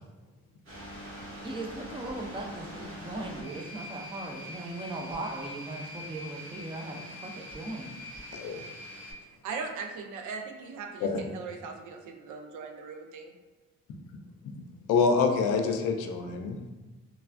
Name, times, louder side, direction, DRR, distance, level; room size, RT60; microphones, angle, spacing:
sound 1, 0.7-9.1, equal, 45° right, 1.3 m, -43 dB
voice 1, 1.4-8.0, right 2 dB, 15° right, 1 dB, 0.4 m, -38 dB
voice 2, 8.3-8.6 11.0-11.3 14.9-16.6, left 5 dB, 85° left, 4 dB, 0.4 m, -26 dB
voice 3, 9.4-13.3, right 5 dB, 75° right, 4 dB, 0.5 m, -39 dB
3.1 x 2.3 x 2.4 m, 1.2 s
cardioid pair, 90°, 30 cm